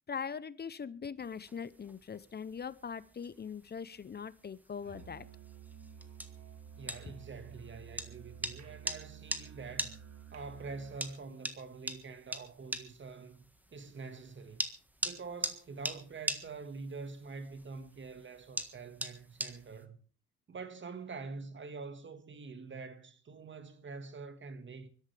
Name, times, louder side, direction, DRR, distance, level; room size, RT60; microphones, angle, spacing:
voice 1, 0.1-5.3, left 6 dB, 35° left, 0.7 m, -41 dB
sound 1, 1.2-19.8, right 1 dB, 5° right, 1.5 m, -43 dB
Musical instrument, 4.8-11.1, right 8 dB, 60° right, 2.4 m, -52 dB
voice 2, 6.8-10.0 10.3-13.4 13.7-14.6 15.0-20.0 20.5-24.9, right 4 dB, 40° right, 1.8 m, -45 dB
24.0 x 13.0 x 3.4 m
cardioid pair, 90°, 30 cm